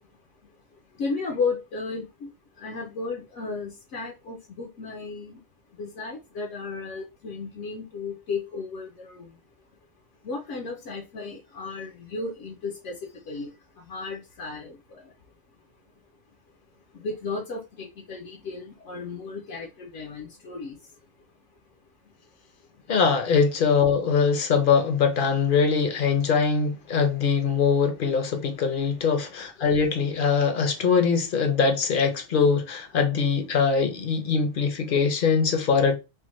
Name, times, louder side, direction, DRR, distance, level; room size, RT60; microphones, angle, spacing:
voice 1, 1.0-2.3 2.6-5.4 5.8-9.3 10.2-13.5 13.9-14.8 16.9-20.8 29.1-29.2, left 4 dB, 75° left, 1.0 m, -34 dB
voice 2, 22.9-36.0, left 5 dB, 55° left, 0.7 m, -22 dB
3.4 x 2.2 x 3.0 m
omnidirectional pair, 1.2 m